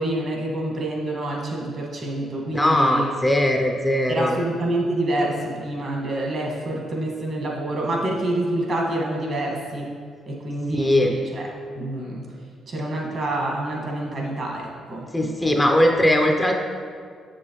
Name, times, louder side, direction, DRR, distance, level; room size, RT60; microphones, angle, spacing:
voice 1, 0.0-3.1 4.1-9.9 10.3-11.5 11.7-12.3 12.7-15.5, right 1 dB, 50° right, -2 dB, 1.6 m, -27 dB
voice 2, 2.5-4.3 10.7-11.1 15.1-16.5, left 1 dB, 10° left, 2 dB, 0.6 m, -19 dB
7.3 x 6.2 x 3.0 m, 2.1 s
cardioid pair, 90°, 0 cm